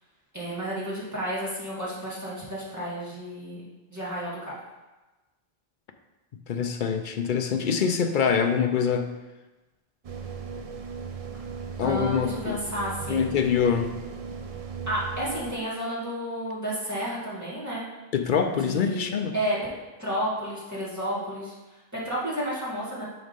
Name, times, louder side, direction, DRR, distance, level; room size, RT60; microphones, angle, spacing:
voice 1, 0.3-3.6 3.9-4.5 11.8-13.3 14.9-17.8 18.7-19.6 20.0-23.0, equal, 15° right, -8 dB, 2.1 m, -31 dB
voice 2, 6.5-9.1 11.8-12.6 13.1-13.9 18.1-19.3, left 6 dB, 60° left, 6 dB, 0.7 m, -24 dB
sound 1, 10.0-15.5, right 6 dB, 50° right, 0.4 m, -37 dB
6.2 x 4.0 x 5.1 m, 1.1 s
omnidirectional pair, 1.1 m